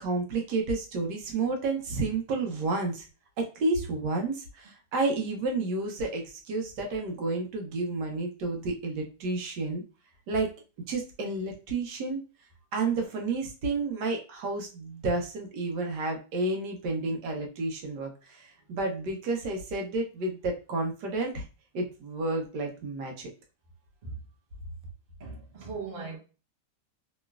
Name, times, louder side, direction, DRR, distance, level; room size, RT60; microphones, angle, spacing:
voice 1, 0.0-3.1 3.4-9.8 10.3-10.5 10.9-12.2 12.7-21.4 21.7-23.3, right 3 dB, 75° right, 1.2 m, -31 dB
voice 2, 25.2-26.2, right 4 dB, 40° right, 0.9 m, -38 dB
3.0 x 3.0 x 2.2 m
omnidirectional pair, 1.9 m